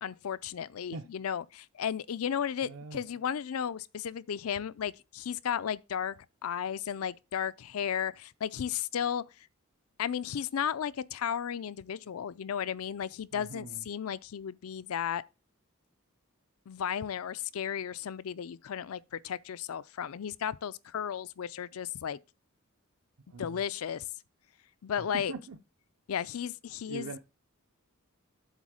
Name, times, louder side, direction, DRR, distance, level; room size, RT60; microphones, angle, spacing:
voice 1, 0.0-6.2 6.4-9.2 10.0-15.2 16.7-22.2 23.4-24.0 24.8-25.3 26.1-27.1, left 8 dB, 85° left, 0.4 m, -34 dB
voice 2, 2.6-3.0 13.3-13.8 23.3-23.6 25.0-25.6 26.8-27.2, right 4 dB, 70° right, 0.6 m, -42 dB
8.2 x 3.6 x 6.2 m
head